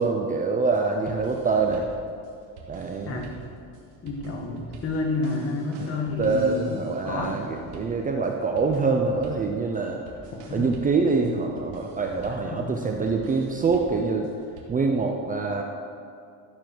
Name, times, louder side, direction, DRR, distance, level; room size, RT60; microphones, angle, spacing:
voice 1, 0.0-1.9 2.7-3.2 5.8-5.9 6.2-10.0 10.5-14.3 14.7-15.6, right 4 dB, 20° right, 2 dB, 0.6 m, -25 dB
sound 1, 0.6-14.6, right 3 dB, 85° right, 2.6 m, -47 dB
voice 2, 4.0-7.3 10.3-10.7 12.5-12.8, left 2 dB, 35° left, 1 dB, 1.9 m, -30 dB
14.0 x 7.5 x 6.0 m, 2.4 s
cardioid pair, 160°, 40 cm